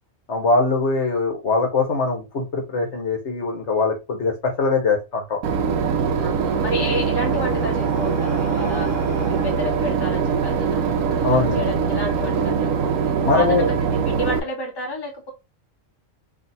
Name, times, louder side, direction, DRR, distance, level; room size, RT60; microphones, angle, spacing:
voice 1, 0.3-5.4 11.2-11.6 13.2-13.6, left 3 dB, 60° left, 1.3 m, -22 dB
Boat Water vehicle / Engine, 5.4-14.4, right 6 dB, 90° right, 1.0 m, -22 dB
voice 2, 6.2-15.3, equal, 20° left, 1.2 m, -31 dB
Breathing, 6.8-11.0, equal, 35° left, 1.4 m, -38 dB
3.4 x 2.7 x 4.1 m
omnidirectional pair, 1.4 m